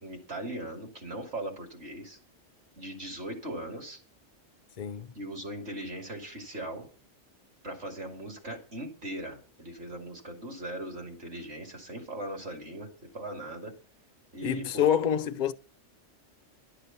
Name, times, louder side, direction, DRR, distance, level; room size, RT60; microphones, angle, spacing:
voice 1, 0.0-2.2 2.8-4.0 5.1-6.9 7.6-12.9 13.1-13.7 14.3-14.9, right 1 dB, 55° right, 2.7 m, -39 dB
voice 2, 4.8-5.1 14.4-15.5, left 9 dB, 50° left, 0.6 m, -27 dB
11.5 x 6.8 x 5.8 m
omnidirectional pair, 1.3 m